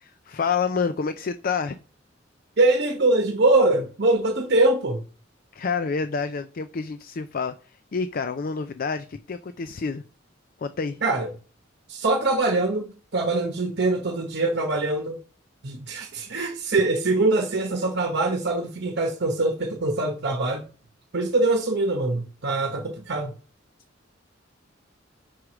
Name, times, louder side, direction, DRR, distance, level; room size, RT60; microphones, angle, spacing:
voice 1, 0.0-1.8 5.5-10.0 10.6-11.0, left 5 dB, 50° left, 0.4 m, -28 dB
voice 2, 2.6-5.0 11.0-11.3 11.9-15.2 15.6-20.6 21.1-23.3, right 2 dB, 60° right, 1.0 m, -23 dB
6.3 x 4.8 x 5.9 m
head